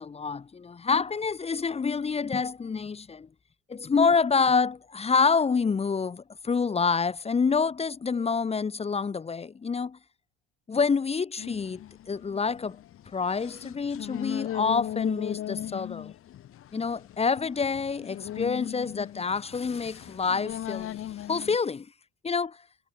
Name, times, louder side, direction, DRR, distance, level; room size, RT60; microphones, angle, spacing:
voice 1, 0.0-3.3 3.7-10.0 10.7-12.8 13.1-16.1 16.7-21.0 21.3-21.9 22.2-22.6, left 5 dB, 20° left, 1.9 m, -27 dB
sound 1, 11.4-21.6, left 12 dB, 45° left, 3.0 m, -38 dB
cardioid pair, 155°, 31 cm